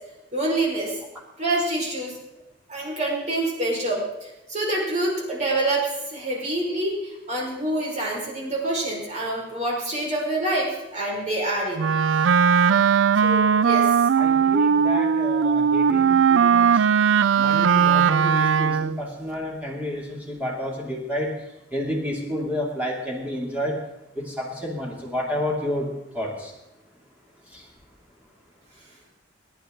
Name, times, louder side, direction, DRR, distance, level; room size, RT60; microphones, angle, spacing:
voice 1, 0.3-1.0 1.4-2.2 2.7-11.8 13.2-14.0, right 1 dB, 40° right, -3 dB, 5.1 m, -26 dB
Wind instrument woodwind instrument, 11.8-19.0, right 7 dB, 90° right, 0.4 m, -19 dB
voice 2, 14.1-16.8 17.4-21.3 21.7-23.8 24.1-25.9 26.1-26.5 27.5-27.7, left 1 dB, 10° right, -3 dB, 2.7 m, -30 dB
22.0 x 10.5 x 3.9 m, 0.99 s
head